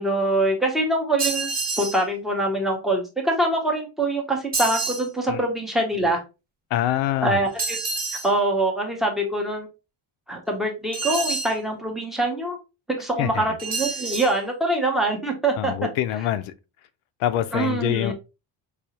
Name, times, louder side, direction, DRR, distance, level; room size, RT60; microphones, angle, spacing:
voice 1, 0.0-1.5 1.8-6.2 7.2-7.8 8.2-9.7 10.3-12.6 12.9-15.7 17.5-18.1, right 1 dB, ahead, 0.5 m, -24 dB
sound 1, 1.2-2.0 4.5-5.1 7.6-8.3 10.9-11.6 13.6-14.3, right 3 dB, 20° right, 0.9 m, -27 dB
voice 2, 6.7-7.4 13.2-13.4 15.6-16.5 17.2-18.1, left 12 dB, 85° left, 0.6 m, -25 dB
4.7 x 2.4 x 2.7 m
cardioid pair, 180°, 47 cm